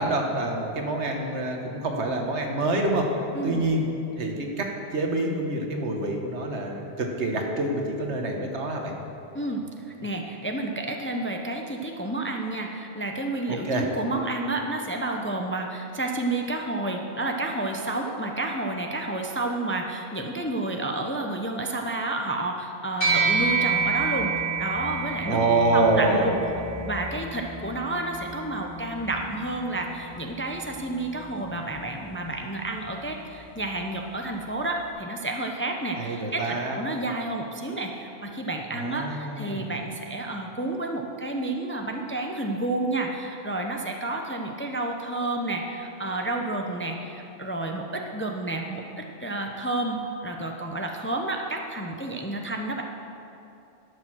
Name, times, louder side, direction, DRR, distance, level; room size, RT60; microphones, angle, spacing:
voice 1, 0.0-3.1 3.4-3.9 4.2-8.9 13.5-13.9 25.2-26.3 36.0-36.8 38.7-39.7, right 2 dB, 80° right, 2 dB, 1.5 m, -26 dB
voice 2, 9.3-9.6 10.0-25.4 25.7-26.4 26.9-52.8, right 2 dB, 15° left, 2 dB, 0.5 m, -30 dB
sound 1, 23.0-32.6, right 4 dB, 50° left, 2.9 m, -30 dB
12.0 x 6.5 x 6.2 m, 2.7 s
omnidirectional pair, 1.1 m